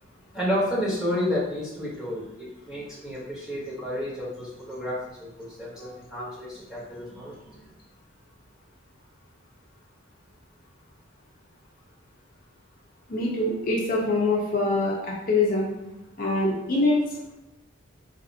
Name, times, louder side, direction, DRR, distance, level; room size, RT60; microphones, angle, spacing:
voice 1, 0.3-7.7, left 1 dB, 5° right, -8 dB, 1.0 m, -31 dB
voice 2, 13.1-15.7 16.2-17.0, left 2 dB, 45° left, -4 dB, 0.6 m, -24 dB
4.1 x 2.6 x 2.6 m, 0.90 s
head